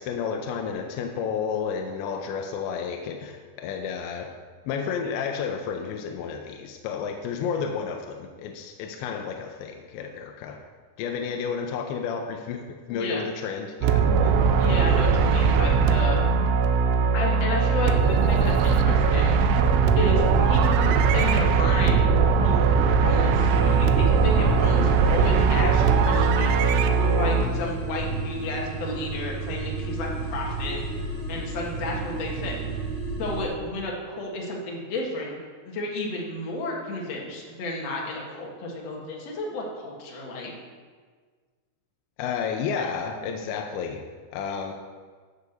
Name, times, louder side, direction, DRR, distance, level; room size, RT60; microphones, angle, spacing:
voice 1, 0.0-4.3 4.7-10.6 11.0-14.3 42.2-44.0 44.3-44.7, left 6 dB, 80° left, 3 dB, 2.9 m, -31 dB
voice 2, 12.9-13.2 14.6-16.2 17.1-19.3 20.0-22.0 22.4-22.6 23.0-30.8 31.3-32.8 33.2-35.4 35.6-40.5, left 2 dB, 50° left, -2 dB, 2.0 m, -32 dB
sound 1, 13.8-27.5, right 5 dB, 85° right, 3.0 m, -20 dB
sound 2, 23.3-33.4, right 3 dB, 25° left, 1.2 m, -32 dB
13.0 x 5.1 x 6.9 m, 1.5 s
omnidirectional pair, 5.3 m